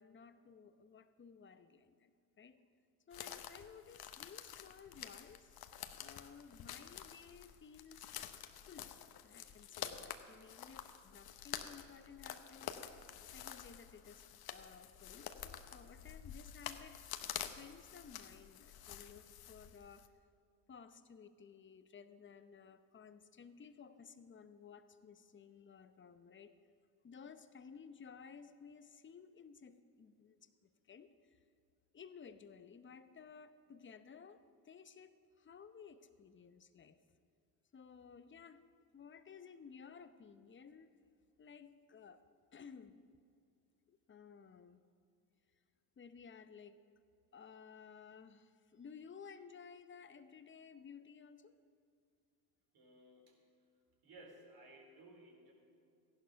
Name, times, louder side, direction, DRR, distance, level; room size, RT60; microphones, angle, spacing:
voice 1, 0.0-2.6 3.1-5.6 5.9-8.1 8.7-8.9 9.2-12.7 13.3-17.0 17.5-20.0 20.7-26.5 27.0-31.4 31.9-37.0 37.7-38.6 38.9-40.9 41.4-42.2 42.5-43.0 43.9-44.8 46.0-46.8 47.3-51.5, left 6 dB, 25° left, 11 dB, 0.8 m, -56 dB
sound 1, 3.1-20.1, left 10 dB, 50° left, 1.0 m, -49 dB
voice 2, 52.7-53.4 54.0-55.5, right 1 dB, 50° right, 0 dB, 3.9 m, -58 dB
15.0 x 11.0 x 5.7 m, 2.5 s
supercardioid pair, 75°, 49 cm